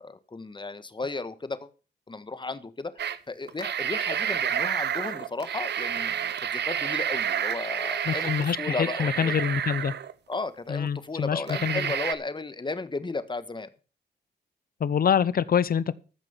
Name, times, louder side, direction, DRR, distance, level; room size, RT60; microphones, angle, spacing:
voice 1, 0.0-1.7 2.1-9.3 10.3-13.7, left 3 dB, 25° left, 1.4 m, -35 dB
sound 1, 3.0-3.2 3.5-10.3 10.9-11.0 11.5-12.1, right 9 dB, 70° right, 0.9 m, -29 dB
voice 2, 8.1-9.9 10.7-11.9 14.8-15.9, left 7 dB, 55° left, 0.8 m, -26 dB
14.5 x 6.0 x 7.1 m
cardioid pair, 70°, 18 cm